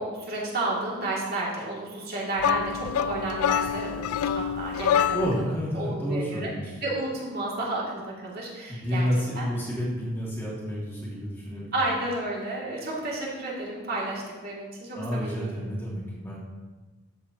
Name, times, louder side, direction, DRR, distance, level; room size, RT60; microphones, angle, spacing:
voice 1, 0.0-5.1 5.7-6.5 6.8-9.1 9.3-9.4 11.7-15.7, right 2 dB, 45° right, -5 dB, 2.6 m, -31 dB
sound 1, 2.4-5.5, left 9 dB, 80° left, 0.3 m, -26 dB
voice 2, 5.1-6.7 8.7-11.7 15.0-16.4, equal, 10° left, -6 dB, 2.1 m, -30 dB
13.5 x 7.5 x 2.9 m, 1.3 s
head